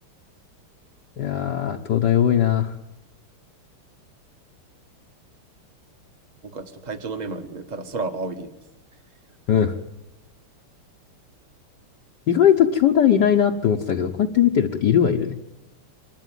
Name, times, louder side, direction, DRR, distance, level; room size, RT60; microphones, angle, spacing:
voice 1, 1.2-2.7 9.5-9.7 12.3-15.4, left 9 dB, 60° left, 2 dB, 1.4 m, -19 dB
voice 2, 6.4-8.5, right 3 dB, 20° right, 8 dB, 1.3 m, -31 dB
25.0 x 12.0 x 9.2 m, 0.93 s
omnidirectional pair, 2.4 m